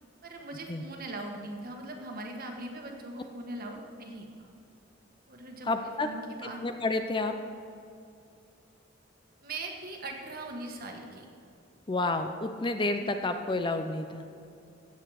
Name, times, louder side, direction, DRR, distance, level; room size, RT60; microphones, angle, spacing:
voice 1, 0.2-4.5 5.3-6.6 9.4-11.2, right 2 dB, 50° right, 2 dB, 1.5 m, -40 dB
voice 2, 5.6-6.1 6.6-7.3 11.9-14.2, left 2 dB, 25° left, 7 dB, 0.6 m, -30 dB
16.0 x 7.9 x 4.9 m, 2.5 s
head